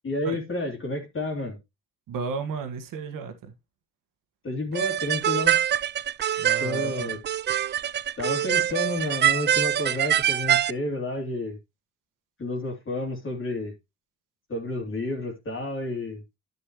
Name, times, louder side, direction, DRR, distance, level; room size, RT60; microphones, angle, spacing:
voice 1, 0.0-1.6 4.4-5.6 6.6-7.2 8.2-11.6 12.4-13.7 14.5-16.2, left 1 dB, 35° left, 3.0 m, -30 dB
voice 2, 2.1-3.5 6.4-7.1, right 5 dB, 65° right, 1.8 m, -33 dB
sound 1, 4.7-10.7, right 10 dB, 30° right, 0.4 m, -24 dB
10.0 x 6.8 x 3.1 m
hypercardioid pair, 60°, 35 cm